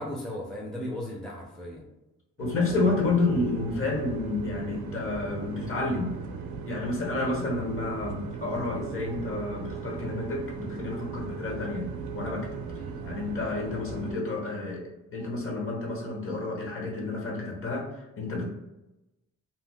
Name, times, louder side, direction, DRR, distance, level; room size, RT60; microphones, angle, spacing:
voice 1, 0.0-1.8 12.7-13.0, left 1 dB, ahead, -2 dB, 0.5 m, -36 dB
voice 2, 2.4-6.1 6.7-12.6 13.0-18.5, left 3 dB, 45° left, -1 dB, 0.9 m, -30 dB
sound 1, 2.4-14.1, right 5 dB, 70° right, 0.5 m, -38 dB
2.7 x 2.0 x 3.4 m, 0.96 s
cardioid pair, 90°, 30 cm